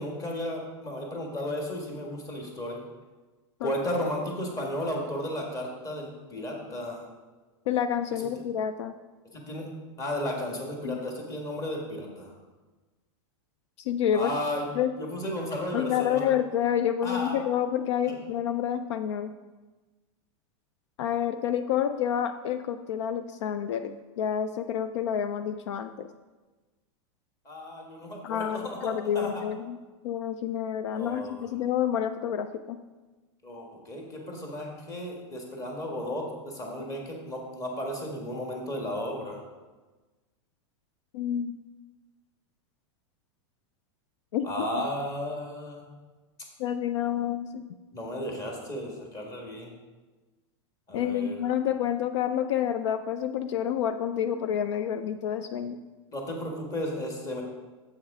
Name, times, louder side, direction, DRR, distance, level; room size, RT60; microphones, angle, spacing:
voice 1, 0.0-2.8 3.6-7.1 8.2-8.3 9.3-9.7 10.0-12.3 14.1-14.7 15.0-16.2 17.0-17.3 18.0-18.1 27.4-29.3 30.9-31.5 33.4-39.4 44.4-45.9 47.9-49.7 50.9-51.4 56.1-57.4, left 1 dB, 20° left, 0 dB, 1.6 m, -34 dB
voice 2, 7.7-9.0 10.8-11.0 13.8-14.3 14.7-14.9 15.7-19.3 21.0-26.1 28.2-29.8 30.0-32.8 41.1-41.6 44.3-44.5 46.6-47.6 50.9-55.8, left 9 dB, 75° left, 10 dB, 0.4 m, -28 dB
7.4 x 6.4 x 4.8 m, 1.2 s
supercardioid pair, 160°, 15 cm